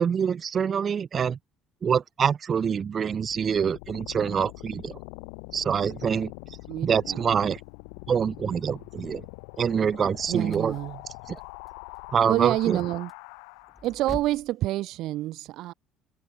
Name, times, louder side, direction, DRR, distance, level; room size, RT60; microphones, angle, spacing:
voice 1, 0.0-1.4 1.8-5.0 5.5-6.3 6.8-7.6 8.1-9.2 9.6-10.7 11.3-11.4 12.1-12.8, right 7 dB, 45° right, 0.3 m, -25 dB
sound 1, 3.1-14.1, left 40 dB or more, 80° left, 6.6 m, -43 dB
voice 2, 6.7-7.2 10.3-11.0 12.3-13.1 13.8-15.7, right 16 dB, 70° right, 2.6 m, -28 dB
sound 2, 9.8-14.5, left 3 dB, 25° left, 3.7 m, -46 dB
hypercardioid pair, 65°, 0 cm